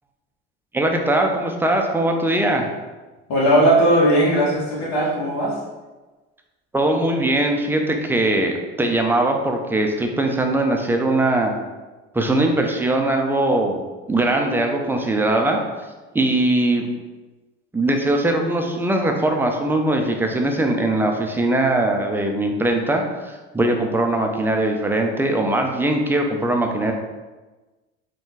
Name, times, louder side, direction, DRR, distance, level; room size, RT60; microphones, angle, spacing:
voice 1, 0.7-2.7 6.7-11.5 12.1-13.8 14.1-15.6 16.1-16.9 17.7-26.9, right 1 dB, 5° right, 2 dB, 0.5 m, -21 dB
voice 2, 3.3-5.6, right 1 dB, 55° left, -5 dB, 1.4 m, -18 dB
3.9 x 2.4 x 3.8 m, 1.2 s
supercardioid pair, 90°, 32 cm